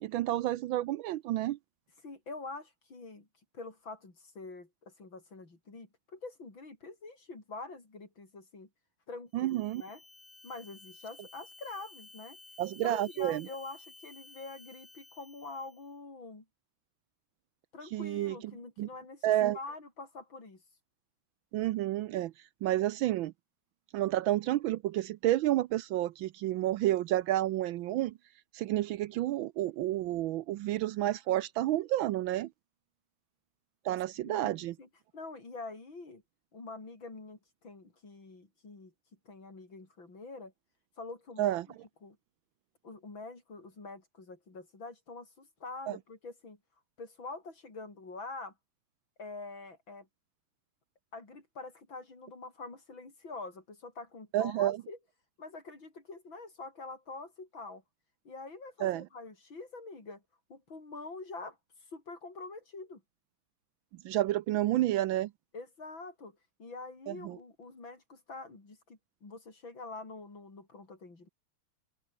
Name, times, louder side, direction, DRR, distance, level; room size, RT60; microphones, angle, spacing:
voice 1, 0.0-1.6 9.3-9.8 12.6-13.5 17.9-18.3 18.8-18.9 19.2-19.6 21.5-22.3 22.6-23.3 23.9-28.1 28.5-32.5 33.8-34.8 41.4-41.7 45.9-46.0 54.3-54.8 58.8-59.1 64.0-65.3 67.1-67.4, right 14 dB, 75° right, 1.3 m, -30 dB
voice 2, 2.0-3.3 3.5-8.7 9.1-10.0 10.4-12.4 12.8-16.5 17.7-20.6 34.2-36.2 36.5-38.9 39.3-40.5 41.0-41.8 42.0-42.2 42.8-46.6 47.0-48.5 49.2-50.1 51.1-55.0 55.4-57.8 58.2-60.2 60.5-61.6 61.9-63.0 65.5-71.3, left 3 dB, 60° left, 6.1 m, -45 dB
sound 1, 9.3-15.9, left 2 dB, 40° left, 6.5 m, -55 dB
omnidirectional pair, 2.4 m